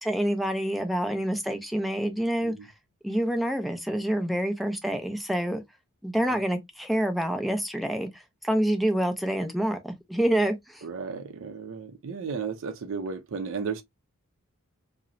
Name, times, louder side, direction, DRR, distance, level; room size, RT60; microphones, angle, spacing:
voice 1, 0.0-2.5 3.0-5.6 6.0-10.8, right 1 dB, ahead, 0.4 m, -27 dB
voice 2, 10.8-13.8, right 5 dB, 65° right, 0.5 m, -34 dB
2.9 x 2.0 x 2.5 m
head